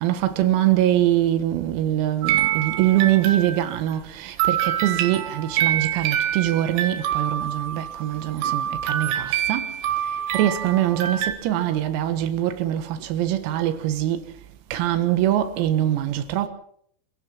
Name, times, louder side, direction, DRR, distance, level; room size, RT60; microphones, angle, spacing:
voice 1, 0.0-9.7 10.3-14.2 14.7-16.5, right 13 dB, 90° right, 4.2 m, -23 dB
sound 1, 2.2-3.9 4.4-11.3, right 11 dB, 70° right, 3.9 m, -26 dB
27.5 x 16.5 x 5.6 m
omnidirectional pair, 6.0 m